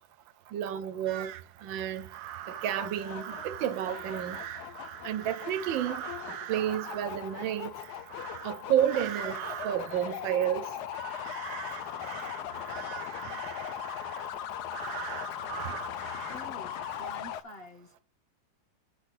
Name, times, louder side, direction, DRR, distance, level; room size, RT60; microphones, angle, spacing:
voice 1, 0.5-1.3 1.6-2.0 2.6-4.4 5.0-6.0 6.5-7.7 8.4-10.7, right 10 dB, 90° right, 1.5 m, -30 dB
sound 1, 1.1-17.3, right 11 dB, 70° right, 1.0 m, -42 dB
sound 2, 2.5-17.4, left 11 dB, 70° left, 1.1 m, -39 dB
voice 2, 16.3-18.0, left 1 dB, 35° left, 1.3 m, -47 dB
10.0 x 4.5 x 5.8 m
omnidirectional pair, 2.0 m